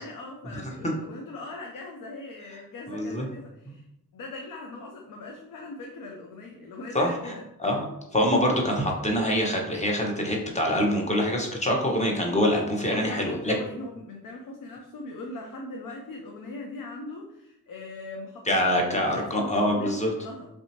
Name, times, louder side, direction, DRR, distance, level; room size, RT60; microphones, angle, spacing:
voice 1, 0.0-3.9 4.1-7.9 12.8-20.5, left 2 dB, 55° left, 1 dB, 0.6 m, -40 dB
voice 2, 0.5-0.9 2.9-3.3 6.9-7.3 7.6-7.8 8.1-13.5 18.5-20.1, equal, 20° left, 0 dB, 1.0 m, -25 dB
3.3 x 2.7 x 2.8 m, 0.85 s
supercardioid pair, 50°, 38 cm